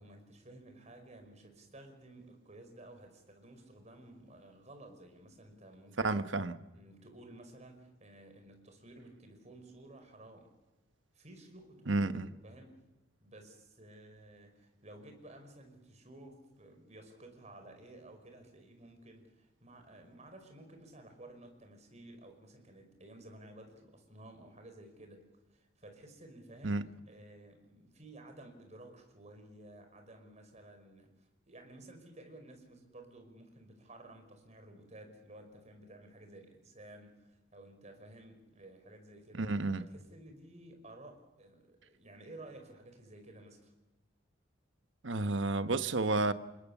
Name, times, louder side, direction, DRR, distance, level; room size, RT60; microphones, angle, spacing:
voice 1, 0.0-6.1 6.7-10.5 11.1-12.8 13.2-25.2 25.5-26.8 27.1-39.5 39.8-43.7, right 1 dB, 35° right, 5.2 m, -54 dB
voice 2, 6.0-6.6 11.9-12.3 26.6-26.9 39.3-39.8 45.0-46.3, right 2 dB, 75° right, 1.2 m, -31 dB
28.0 x 21.0 x 7.2 m
head